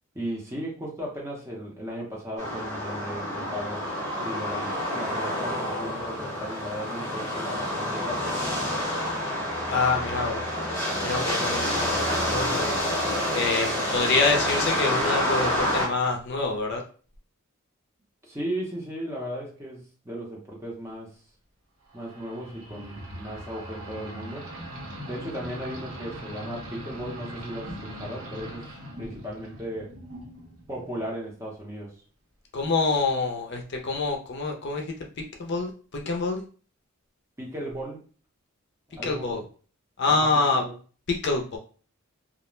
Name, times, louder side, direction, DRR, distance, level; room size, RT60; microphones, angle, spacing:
voice 1, 0.1-3.8 4.2-8.6 18.2-21.1 21.9-24.5 25.1-28.7 29.0-30.0 30.7-31.9 37.4-38.0 39.0-39.4 40.1-40.3 40.5-40.7, equal, 15° right, -3 dB, 0.7 m, -36 dB
sound 1, 2.4-15.9, left 1 dB, 15° left, 0.9 m, -28 dB
voice 2, 9.7-10.4 11.0-12.8 13.3-16.8 32.5-34.9 35.4-36.4 39.0-39.5 40.0-40.6 41.1-41.6, left 3 dB, 55° left, 2 dB, 0.5 m, -26 dB
sound 2, 21.9-31.2, equal, 80° right, 0.9 m, -40 dB
2.4 x 2.1 x 3.0 m, 0.39 s
head